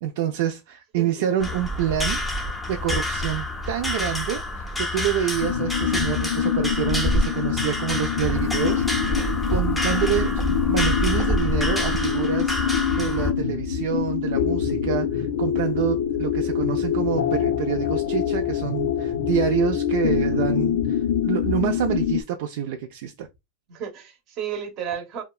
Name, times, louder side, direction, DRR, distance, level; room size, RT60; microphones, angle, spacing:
voice 1, 0.0-2.2 2.7-9.2 9.5-12.6 13.0-23.3, right 10 dB, 70° right, 0.3 m, -27 dB
voice 2, 1.0-1.6 23.7-25.2, right 8 dB, 45° right, 0.8 m, -33 dB
sound 1, 1.4-13.3, left 1 dB, 5° left, 0.5 m, -27 dB
sound 2, 5.4-22.2, left 8 dB, 75° left, 0.5 m, -25 dB
2.7 x 2.2 x 2.3 m
supercardioid pair, 135°, 0 cm